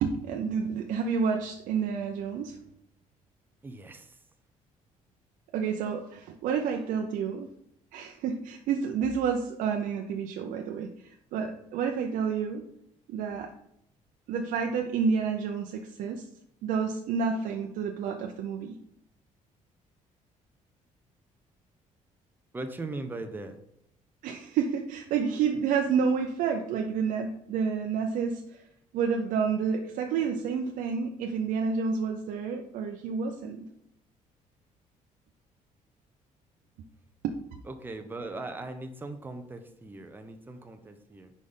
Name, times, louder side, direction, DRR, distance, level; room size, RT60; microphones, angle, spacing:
voice 1, 0.0-2.6 5.5-7.5 7.9-10.9 11.3-12.7 13.1-13.5 14.3-16.2 16.6-18.8 24.2-28.6 28.9-33.7 37.2-37.3, right 6 dB, 85° right, 3 dB, 0.6 m, -29 dB
voice 2, 3.6-4.2 22.5-23.6 37.6-41.3, right 2 dB, 15° right, 6 dB, 0.7 m, -39 dB
4.9 x 4.1 x 5.5 m, 0.74 s
cardioid pair, 140°, 14 cm